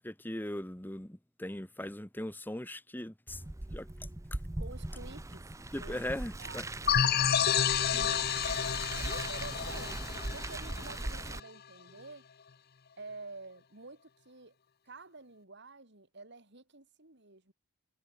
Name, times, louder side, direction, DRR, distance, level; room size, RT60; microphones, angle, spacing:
voice 1, 0.0-3.4 3.7-3.9 5.7-6.7 7.9-8.2, left 1 dB, 10° left, 1.4 m, -39 dB
Car, 3.3-11.4, right 2 dB, 15° right, 0.6 m, -40 dB
voice 2, 4.6-5.5 5.8-8.2 8.9-12.3 13.0-14.6 14.9-17.5, right 3 dB, 55° right, 3.9 m, -49 dB
sound 1, 6.9-11.3, left 8 dB, 50° left, 0.8 m, -30 dB
head